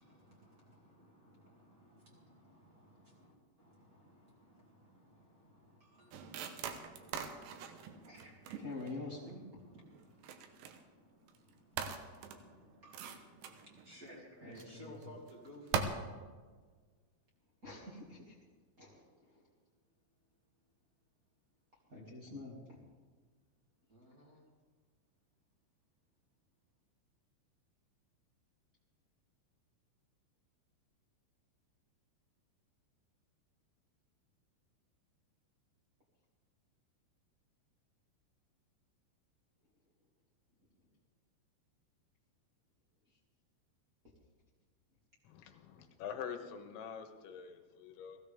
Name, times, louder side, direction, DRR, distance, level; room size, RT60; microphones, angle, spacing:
voice 1, 0.0-8.8 9.1-16.0 17.7-17.9 23.9-24.4, equal, 30° right, -3 dB, 1.7 m, -59 dB
sound 1, 6.1-9.3 9.9-10.8 11.3-11.5 11.8-14.1 14.5-14.6 15.0-15.3 15.7-15.8, right 8 dB, 75° right, 2.8 m, -42 dB
voice 2, 8.6-9.4 14.4-14.9 17.6-18.3 18.8-19.4 21.9-22.8, left 3 dB, 45° right, -4 dB, 1.1 m, -46 dB
voice 3, 45.2-48.2, left 7 dB, 75° left, 6 dB, 3.3 m, -45 dB
19.0 x 15.5 x 3.5 m, 1.4 s
omnidirectional pair, 5.7 m